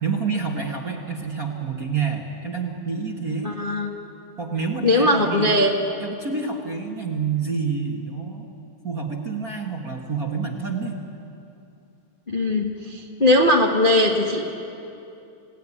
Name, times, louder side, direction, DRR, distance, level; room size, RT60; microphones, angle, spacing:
voice 1, 0.0-3.5 4.4-5.7 6.0-8.5 8.8-11.0, right 5 dB, 35° right, 0 dB, 1.5 m, -28 dB
voice 2, 3.4-3.9 4.8-5.8 12.3-14.4, left 1 dB, 40° left, -1 dB, 0.7 m, -20 dB
29.0 x 17.5 x 9.9 m, 2.7 s
omnidirectional pair, 4.1 m